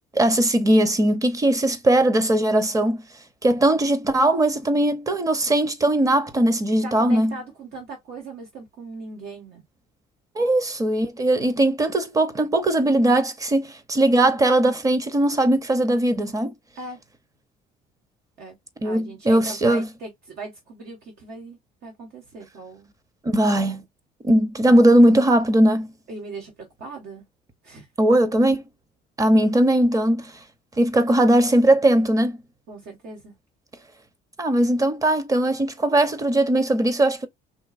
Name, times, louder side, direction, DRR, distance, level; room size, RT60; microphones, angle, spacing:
voice 1, 0.1-3.0 3.4-7.4 10.3-16.5 18.8-19.9 23.2-23.8 24.2-25.9 28.0-28.6 29.2-30.3 30.8-32.4 34.4-37.3, right 1 dB, 20° right, 0.9 m, -19 dB
voice 2, 6.8-9.6 16.8-17.0 18.4-22.9 26.1-26.5 26.8-27.2 27.6-27.9 32.7-33.3, right 3 dB, 70° right, 1.8 m, -39 dB
4.4 x 3.2 x 2.5 m
cardioid pair, 110°, 17 cm